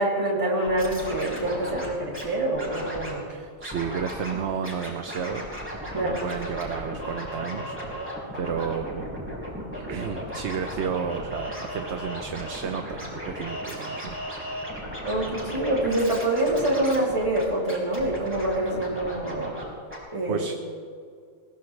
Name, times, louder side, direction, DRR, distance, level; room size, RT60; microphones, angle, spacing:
voice 1, 0.0-3.3 5.9-6.2 15.0-19.5 20.1-20.5, right 1 dB, 25° right, -5 dB, 3.3 m, -26 dB
Scratching (performance technique), 0.5-2.3 2.5-3.1 3.6-4.4 4.6-19.6 19.9-20.0, equal, 10° right, 5.1 m, -36 dB
voice 2, 3.3-5.5 6.0-9.1 9.7-14.1 20.3-20.5, right 7 dB, 75° right, 6 dB, 1.1 m, -32 dB
21.5 x 19.5 x 3.3 m, 2.3 s
omnidirectional pair, 1.2 m